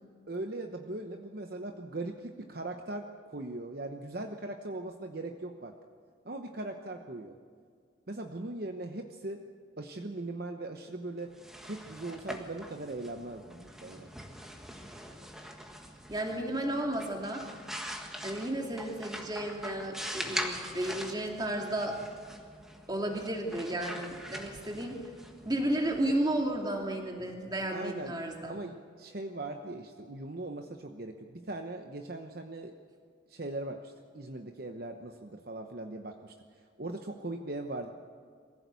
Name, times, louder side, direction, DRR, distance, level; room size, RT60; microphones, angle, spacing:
voice 1, 0.3-5.7 6.2-7.4 8.1-9.4 9.8-11.3 11.6-14.1 27.7-28.2 28.5-32.7 33.3-36.3 36.8-37.9, right 2 dB, 50° right, 5 dB, 1.0 m, -39 dB
sound 1, 11.2-26.9, equal, ahead, 1.6 m, -43 dB
voice 2, 16.1-17.4 18.2-22.0 22.9-25.0 25.4-28.6, right 1 dB, 20° right, 1 dB, 2.6 m, -33 dB
22.5 x 16.0 x 8.3 m, 2.1 s
head